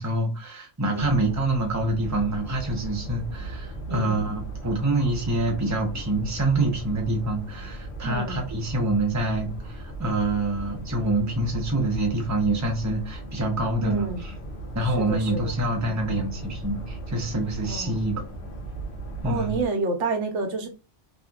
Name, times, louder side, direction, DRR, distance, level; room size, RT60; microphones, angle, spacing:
voice 1, 0.0-14.3 14.7-18.2 19.2-19.5, right 2 dB, 20° right, 0.5 m, -26 dB
voice 2, 0.9-1.2 3.9-4.2 8.0-8.4 13.8-14.2 14.8-15.5 15.8-16.2 17.6-18.0 19.2-20.7, right 3 dB, 75° right, 1.0 m, -30 dB
sound 1, 1.0-19.7, right 1 dB, 55° left, 0.8 m, -37 dB
2.8 x 2.5 x 2.3 m
omnidirectional pair, 1.3 m